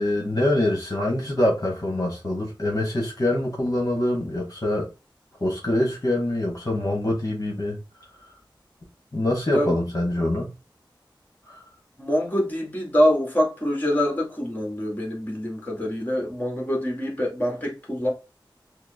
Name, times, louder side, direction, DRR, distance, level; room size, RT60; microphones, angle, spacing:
voice 1, 0.0-4.9 5.4-7.8 9.1-10.5 11.5-11.6, left 1 dB, 45° left, 1.3 m, -24 dB
voice 2, 12.0-18.1, equal, 20° left, 1.5 m, -25 dB
5.8 x 2.1 x 2.7 m
wide cardioid pair, 55°, 8 cm